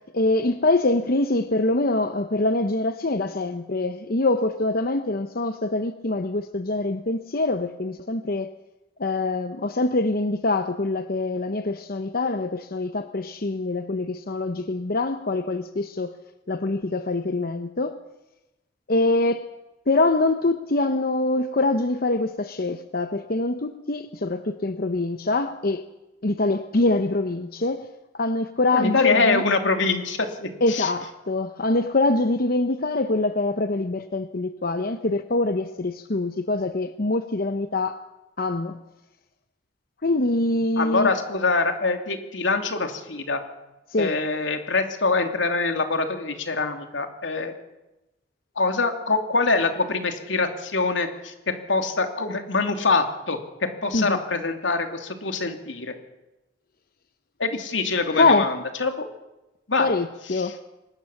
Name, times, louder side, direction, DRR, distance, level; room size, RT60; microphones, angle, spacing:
voice 1, 0.1-8.5 9.0-16.2 16.5-18.0 18.9-19.5 19.9-25.8 26.2-27.9 28.1-29.4 30.6-38.0 38.4-38.8 40.0-41.1 43.9-44.1 53.9-54.2 58.1-58.5 59.8-60.6, left 2 dB, 50° left, 9 dB, 0.9 m, -24 dB
voice 2, 28.7-30.9 40.8-43.4 44.0-47.5 48.5-55.9 57.4-59.1 59.7-59.9 60.3-60.5, left 3 dB, 85° left, 5 dB, 2.8 m, -24 dB
24.0 x 20.0 x 7.2 m, 1.0 s
head